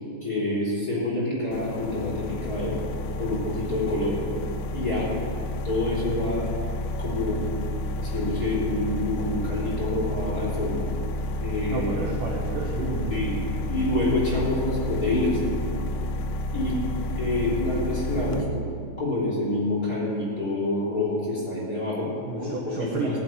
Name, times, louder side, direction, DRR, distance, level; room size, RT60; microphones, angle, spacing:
voice 1, 0.2-2.8 3.1-4.2 4.7-5.2 5.6-6.5 7.0-7.5 8.0-10.8 11.4-11.9 13.1-13.4 13.7-15.4 16.5-16.8 17.1-18.4 19.0-22.1 22.4-23.2, left 2 dB, 20° left, -6 dB, 3.1 m, -27 dB
sound 1, 1.5-18.4, left 1 dB, 85° left, 2.5 m, -31 dB
voice 2, 11.7-13.5 22.3-23.2, right 3 dB, 80° right, -2 dB, 1.9 m, -31 dB
15.0 x 7.3 x 9.3 m, 2.6 s
omnidirectional pair, 5.9 m